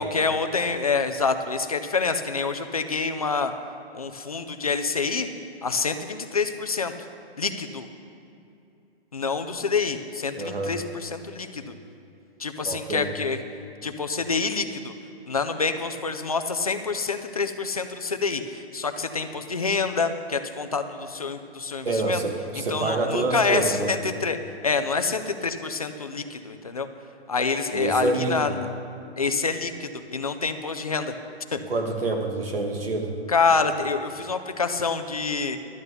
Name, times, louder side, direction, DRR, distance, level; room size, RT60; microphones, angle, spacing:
voice 1, 0.0-3.5 3.9-5.3 5.6-6.9 7.4-7.9 9.1-11.7 12.4-13.4 13.8-14.9 15.3-22.2 22.7-24.4 24.6-26.9 27.3-28.5 29.2-31.1 31.5-31.6 33.3-35.6, left 4 dB, 35° left, 7 dB, 0.5 m, -27 dB
voice 2, 10.4-10.8 12.6-13.1 21.8-24.0 27.7-28.6 31.7-33.2, right 2 dB, 60° right, 3 dB, 1.8 m, -27 dB
12.0 x 8.8 x 6.7 m, 2.7 s
hypercardioid pair, 180°, 33 cm